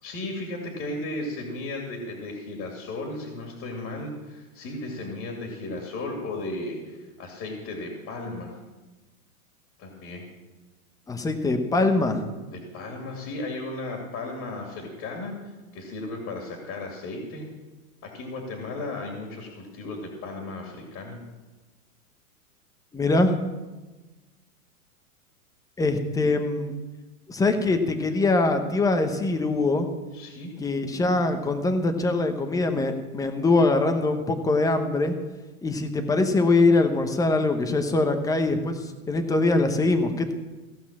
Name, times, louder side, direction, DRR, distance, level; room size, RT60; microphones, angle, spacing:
voice 1, 0.0-8.5 9.8-10.2 12.5-17.5 18.0-21.2 30.1-30.5, left 2 dB, 35° left, 1 dB, 2.4 m, -35 dB
voice 2, 11.1-12.2 22.9-23.3 25.8-26.7 27.3-29.9 30.6-35.1 35.6-40.3, left 2 dB, 10° left, 8 dB, 0.8 m, -23 dB
16.0 x 5.4 x 7.3 m, 1.2 s
hypercardioid pair, 135°, 44 cm